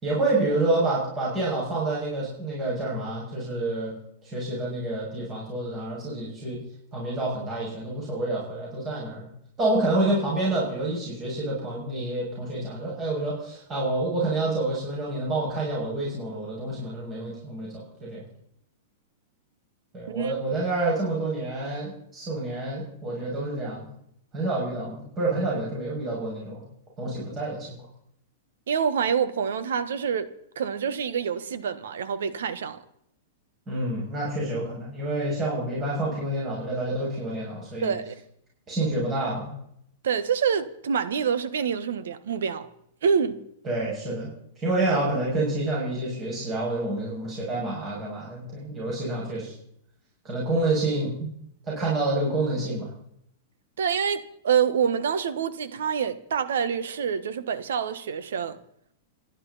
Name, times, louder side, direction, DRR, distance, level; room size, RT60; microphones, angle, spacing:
voice 1, 0.0-3.9 4.2-6.6 6.9-9.3 9.6-17.7 18.0-18.2 19.9-23.8 24.3-26.6 27.0-27.8 33.7-37.9 38.7-39.5 43.6-44.3 44.6-49.5 50.2-51.3 51.7-52.9, right 2 dB, 20° right, 6.8 m, -28 dB
voice 2, 28.7-32.8 37.8-38.2 40.0-42.7 43.0-43.4 53.8-58.6, right 7 dB, 85° right, 1.5 m, -26 dB
27.5 x 11.0 x 4.2 m
supercardioid pair, 160°, 0 cm